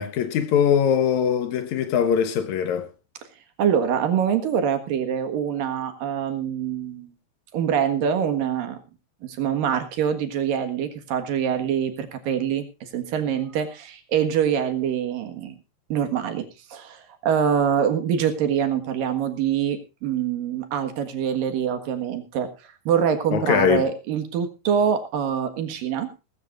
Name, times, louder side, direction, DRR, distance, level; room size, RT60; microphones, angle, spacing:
voice 1, 0.0-2.9 23.3-23.9, left 8 dB, 80° left, 1.6 m, -21 dB
voice 2, 3.6-7.1 7.5-8.8 9.2-15.6 15.9-26.1, right 8 dB, 60° right, 2.9 m, -25 dB
18.5 x 15.5 x 2.5 m
omnidirectional pair, 5.1 m